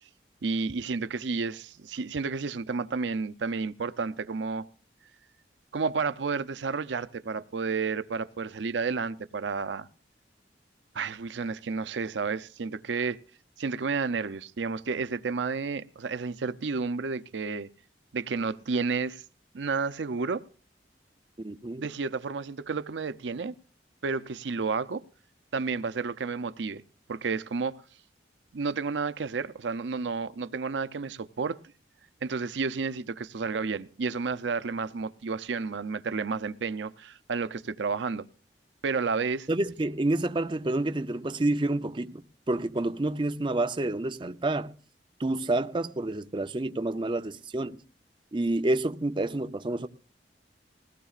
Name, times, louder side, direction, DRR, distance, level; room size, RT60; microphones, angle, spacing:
voice 1, 0.4-4.7 5.7-9.9 10.9-13.2 13.6-17.7 18.1-19.2 19.5-20.4 21.8-23.5 24.0-25.0 25.5-26.8 27.1-27.7 28.5-31.6 32.2-38.3 38.8-39.5, right 4 dB, 85° right, 0.6 m, -31 dB
voice 2, 21.4-21.8 39.5-42.2 42.5-44.7 45.2-47.8 48.3-49.9, right 2 dB, 25° right, 0.5 m, -28 dB
20.5 x 17.0 x 2.4 m
head